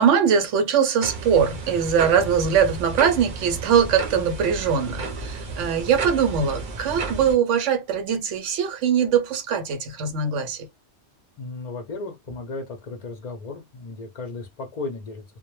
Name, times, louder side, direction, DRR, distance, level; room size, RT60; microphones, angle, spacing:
voice 1, 0.0-10.7, right 7 dB, 90° right, 0.9 m, -21 dB
sound 1, 1.0-7.4, right 4 dB, 50° right, 0.7 m, -33 dB
voice 2, 11.4-15.4, left 3 dB, 55° left, 0.4 m, -35 dB
2.2 x 2.1 x 3.0 m
omnidirectional pair, 1.2 m